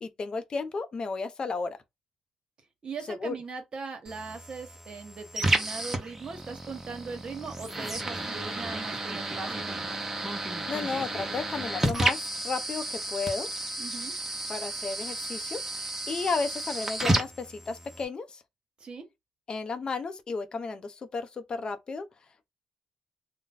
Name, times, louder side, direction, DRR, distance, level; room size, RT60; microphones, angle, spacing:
voice 1, 0.0-1.8 3.1-3.3 10.7-13.5 14.5-15.6 16.1-18.4 19.5-22.1, left 4 dB, 45° left, 0.6 m, -33 dB
voice 2, 2.8-10.0 13.8-14.1 18.8-19.1, right 4 dB, 50° right, 1.0 m, -40 dB
sound 1, 4.1-18.1, right 1 dB, 20° right, 0.9 m, -32 dB
2.6 x 2.1 x 4.0 m
cardioid pair, 70°, 2 cm